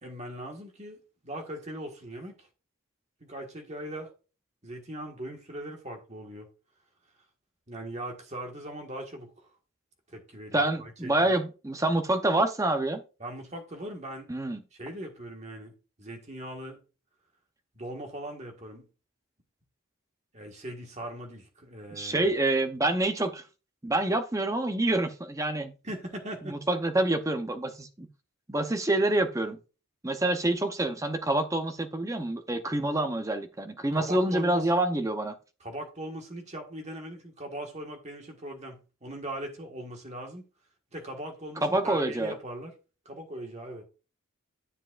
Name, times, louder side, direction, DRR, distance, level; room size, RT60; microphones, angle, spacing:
voice 1, 0.0-2.5 3.2-4.1 4.6-6.5 7.7-9.5 10.1-11.4 13.2-14.3 14.7-15.7 16.0-16.8 17.7-18.8 20.3-22.3 25.8-26.6 34.0-34.8 35.6-40.4 40.9-42.7 43.0-43.8, right 1 dB, 30° right, 1.6 m, -40 dB
voice 2, 10.5-13.0 14.3-14.6 21.9-23.4 23.8-25.7 26.5-28.1 28.5-29.6 30.0-35.4 41.6-42.3, right 2 dB, 15° right, 0.7 m, -27 dB
10.0 x 7.4 x 2.5 m
head